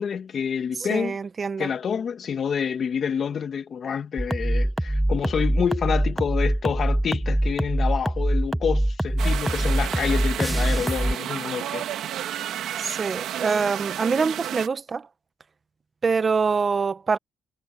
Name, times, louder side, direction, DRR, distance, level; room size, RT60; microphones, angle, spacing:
voice 1, 0.0-1.2 1.6-11.9, left 7 dB, 55° left, 2.4 m, -28 dB
voice 2, 0.8-1.7 12.8-15.1 16.0-17.2, right 5 dB, 35° right, 1.1 m, -25 dB
sound 1, 4.2-11.1, right 1 dB, 5° right, 0.8 m, -24 dB
sound 2, 9.2-14.7, right 11 dB, 80° right, 2.7 m, -32 dB
cardioid pair, 90°, 0 cm